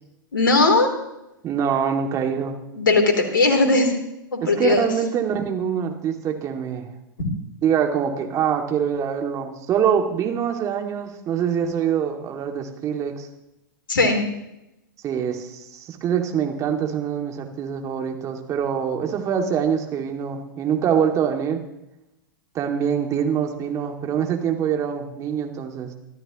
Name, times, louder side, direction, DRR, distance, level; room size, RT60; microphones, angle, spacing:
voice 1, 0.3-0.9 2.7-3.9 4.3-4.8 7.2-7.3 13.9-14.2, left 3 dB, 70° left, 4 dB, 3.4 m, -18 dB
voice 2, 1.4-2.6 4.4-6.9 7.6-13.3 15.0-21.6 22.5-25.9, right 8 dB, 30° right, 3 dB, 2.3 m, -24 dB
24.0 x 13.5 x 3.0 m, 0.88 s
figure-of-eight pair, 100°, 11 cm